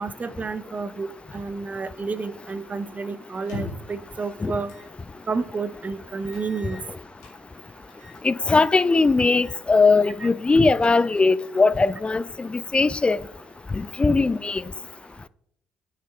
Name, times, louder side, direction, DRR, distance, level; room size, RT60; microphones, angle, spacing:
voice 1, 0.0-4.7 5.3-6.8 10.2-10.3, right 4 dB, 35° right, 0.6 m, -30 dB
sound 1, 3.4-4.0 4.7-4.9 5.3-5.4 6.2-7.4 7.9-8.2 8.6-8.9 9.3-9.6 9.9-10.0 10.5-11.3, left 2 dB, 75° left, 1.8 m, -40 dB
voice 2, 8.2-13.2 13.8-14.6, left 3 dB, 25° left, 0.3 m, -20 dB
9.6 x 5.7 x 3.4 m
hypercardioid pair, 45°, 5 cm